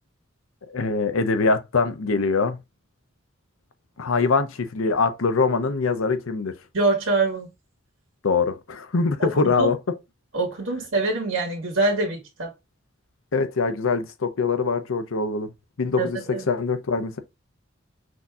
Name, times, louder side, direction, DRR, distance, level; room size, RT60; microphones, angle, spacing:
voice 1, 0.7-2.6 4.0-6.5 8.2-9.9 13.3-15.5 15.8-17.2, left 4 dB, 90° left, 0.6 m, -23 dB
voice 2, 6.7-7.5 9.2-9.3 9.6-9.7 10.3-12.5 16.0-16.4, right 3 dB, 85° right, 1.5 m, -24 dB
6.1 x 2.7 x 2.4 m
head